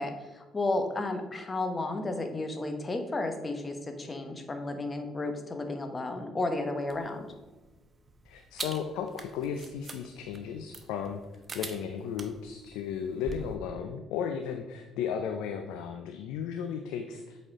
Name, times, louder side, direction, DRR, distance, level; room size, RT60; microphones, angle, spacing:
voice 1, 0.0-7.3, left 2 dB, 30° left, 6 dB, 1.1 m, -33 dB
sound 1, 6.9-13.6, right 3 dB, 40° right, 0.9 m, -45 dB
voice 2, 8.3-11.2 11.5-17.4, left 7 dB, 80° left, 5 dB, 0.4 m, -35 dB
7.7 x 4.2 x 3.7 m, 1.2 s
supercardioid pair, 60°, 0 cm